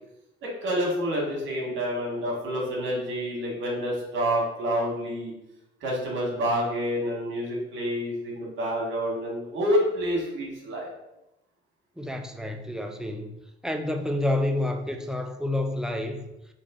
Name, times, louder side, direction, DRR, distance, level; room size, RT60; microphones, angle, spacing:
voice 1, 0.4-5.3 5.8-10.9, equal, 75° right, 1.6 m, -28 dB
voice 2, 12.0-16.3, left 1 dB, 5° right, 0.5 m, -29 dB
4.2 x 3.1 x 3.7 m
cardioid pair, 90°, 20 cm